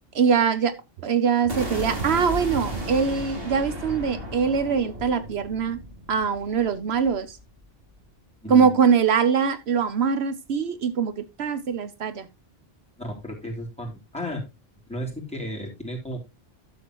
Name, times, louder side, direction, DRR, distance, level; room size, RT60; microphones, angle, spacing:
voice 1, 0.1-0.7 1.0-5.8 6.1-7.4 8.5-12.3, right 6 dB, 80° right, 1.1 m, -23 dB
sound 1, 1.5-7.5, equal, 65° right, 2.7 m, -34 dB
voice 2, 8.4-8.8 13.0-14.4 14.9-16.2, equal, 5° left, 3.2 m, -33 dB
12.5 x 7.0 x 3.0 m
omnidirectional pair, 1.1 m